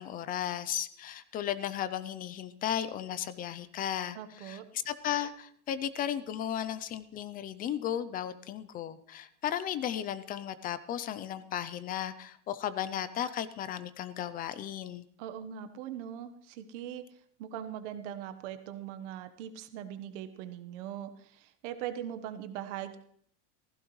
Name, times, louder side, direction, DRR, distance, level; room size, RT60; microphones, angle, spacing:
voice 1, 0.0-15.1, left 10 dB, 25° left, 14 dB, 0.4 m, -35 dB
voice 2, 4.1-4.7 15.2-17.0 17.4-23.0, right 10 dB, 80° right, 10 dB, 1.2 m, -41 dB
15.5 x 15.5 x 3.1 m, 0.63 s
cardioid pair, 170°, 36 cm